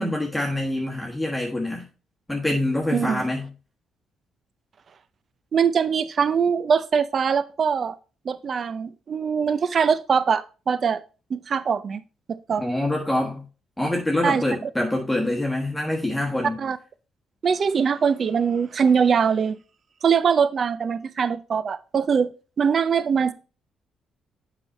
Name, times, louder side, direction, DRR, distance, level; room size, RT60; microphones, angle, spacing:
voice 1, 0.0-1.9 2.3-3.5 12.6-13.4 13.8-16.6, left 1 dB, 5° left, 1.3 m, -25 dB
voice 2, 2.9-3.2 5.5-8.0 8.2-11.0 11.3-12.0 12.5-12.6 14.2-14.4 16.6-16.8 17.4-19.6 20.0-22.3 22.6-23.3, right 6 dB, 50° right, 0.6 m, -22 dB
7.8 x 4.9 x 4.2 m
cardioid pair, 90°, 0 cm